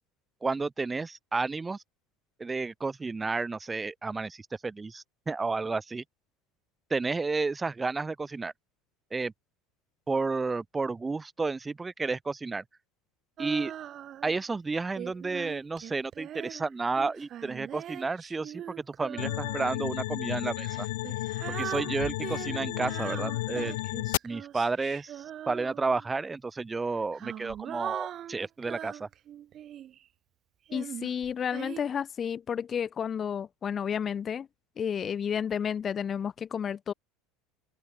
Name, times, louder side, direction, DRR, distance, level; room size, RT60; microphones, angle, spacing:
voice 1, 0.4-1.8 2.4-6.0 6.9-8.5 9.1-9.3 10.1-12.6 13.4-13.7 14.2-20.9 21.5-23.8 24.2-29.1, right 3 dB, 15° right, 2.2 m, -31 dB
Female singing, 13.4-14.4 15.0-19.8 20.6-26.1 26.9-30.0 30.7-31.8, right 11 dB, 35° right, 4.4 m, -41 dB
sound 1, 19.2-24.2, left 19 dB, 85° left, 2.3 m, -33 dB
voice 2, 30.7-34.5 34.8-36.9, left 7 dB, 25° left, 2.2 m, -31 dB
open air
supercardioid pair, 140°, 0 cm